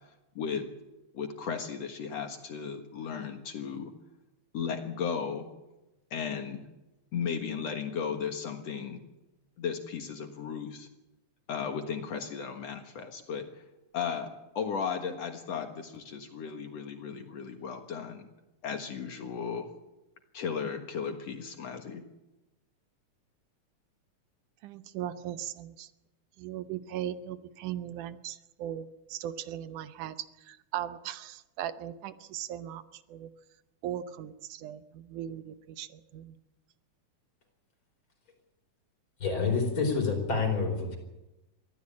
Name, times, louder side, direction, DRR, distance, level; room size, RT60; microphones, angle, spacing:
voice 1, 0.4-0.7 1.1-3.9 4.5-5.5 6.1-6.7 7.1-9.0 9.6-10.9 11.5-13.5 13.9-18.3 18.6-19.7 20.3-22.0, left 6 dB, 60° left, 5 dB, 2.5 m, -35 dB
voice 2, 24.6-25.9 26.4-33.3 33.8-36.4, right 11 dB, 90° right, 12 dB, 2.5 m, -38 dB
voice 3, 39.2-41.0, left 4 dB, 40° left, 4 dB, 5.2 m, -28 dB
23.5 x 15.0 x 8.7 m, 0.98 s
omnidirectional pair, 3.5 m